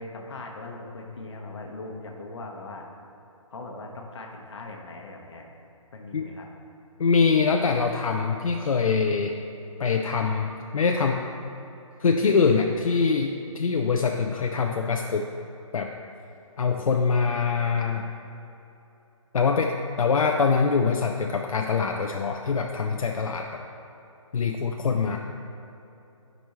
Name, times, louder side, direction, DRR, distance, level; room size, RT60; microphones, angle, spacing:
voice 1, 0.0-2.9 3.5-5.5 5.9-6.5, left 2 dB, 55° left, 1 dB, 1.1 m, -40 dB
voice 2, 7.0-9.3 9.8-11.2 12.0-15.3 15.7-15.9 16.6-18.0 19.3-23.6 24.3-25.2, left 5 dB, 80° left, 2 dB, 0.6 m, -24 dB
11.5 x 5.3 x 3.0 m, 2.9 s
hypercardioid pair, 170°, 17 cm